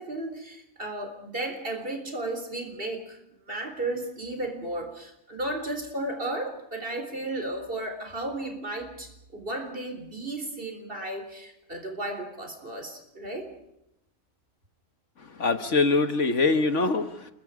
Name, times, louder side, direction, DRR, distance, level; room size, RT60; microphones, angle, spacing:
voice 1, 0.0-3.2 3.5-13.5, right 2 dB, 40° right, 5 dB, 4.1 m, -34 dB
voice 2, 15.3-17.3, left 3 dB, 60° left, 9 dB, 1.6 m, -24 dB
28.5 x 22.0 x 5.0 m, 0.81 s
omnidirectional pair, 1.5 m